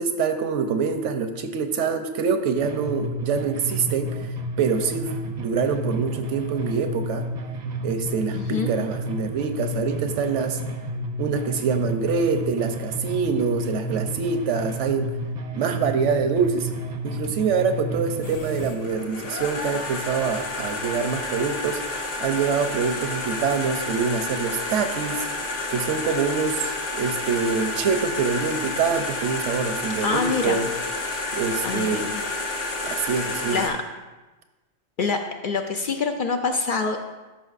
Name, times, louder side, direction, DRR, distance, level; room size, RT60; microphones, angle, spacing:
voice 1, 0.0-4.3 4.6-7.2 7.8-10.6 11.2-15.1 15.6-16.7 17.0-25.3 25.7-30.7 31.3-32.1 32.8-33.6, right 5 dB, 85° right, 8 dB, 1.0 m, -25 dB
sound 1, 2.6-18.6, right 1 dB, 50° right, 0.6 m, -31 dB
voice 2, 8.3-8.7 30.0-30.6 31.6-32.2 33.1-33.2 33.5-33.8 35.0-37.0, left 4 dB, 60° left, 5 dB, 0.6 m, -26 dB
sound 2, 18.2-33.7, left 2 dB, 85° left, 1.3 m, -30 dB
12.5 x 5.9 x 2.4 m, 1.2 s
omnidirectional pair, 1.2 m